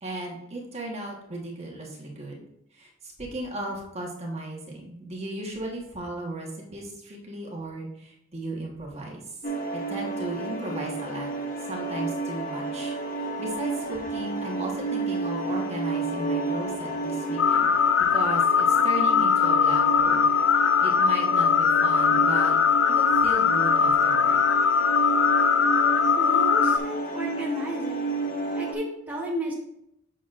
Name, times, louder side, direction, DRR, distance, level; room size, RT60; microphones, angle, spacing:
voice 1, 0.0-2.4 2.7-9.2 9.9-11.3 11.7-17.7 18.1-20.2 20.5-22.5 22.8-24.4, right 1 dB, 35° right, -2 dB, 1.4 m, -35 dB
sound 1, 9.4-28.7, right 2 dB, 45° left, 0.8 m, -31 dB
sound 2, 17.4-26.8, left 7 dB, 80° left, 0.4 m, -21 dB
voice 2, 26.2-28.1 28.5-29.5, equal, 10° right, -5 dB, 1.2 m, -33 dB
8.1 x 6.2 x 2.5 m, 0.77 s
head